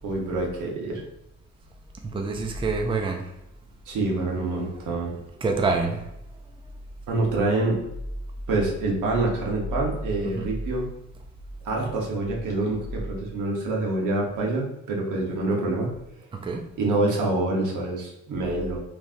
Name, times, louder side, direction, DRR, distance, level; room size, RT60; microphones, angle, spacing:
voice 1, 0.0-1.0 3.9-5.1 7.1-7.8 8.5-10.9 11.6-15.9 16.8-18.8, right 2 dB, 80° right, -2 dB, 1.2 m, -26 dB
voice 2, 2.1-3.2 5.4-6.0 10.2-10.5 16.4-16.6, right 3 dB, 15° right, 3 dB, 0.5 m, -26 dB
3.5 x 3.2 x 2.6 m, 0.82 s
cardioid pair, 90°, 30 cm